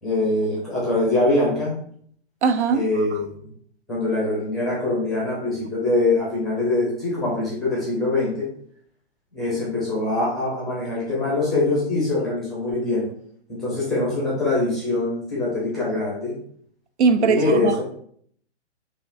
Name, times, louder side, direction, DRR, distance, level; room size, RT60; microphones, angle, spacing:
voice 1, 0.0-1.7 2.7-3.5 3.9-8.5 9.3-13.0 13.5-16.3 17.1-17.8, left 2 dB, ahead, 0.6 m, -23 dB
voice 2, 2.4-2.8 17.0-17.8, right 5 dB, 70° right, 0.5 m, -19 dB
5.5 x 2.4 x 2.5 m
hypercardioid pair, 155°, 35 cm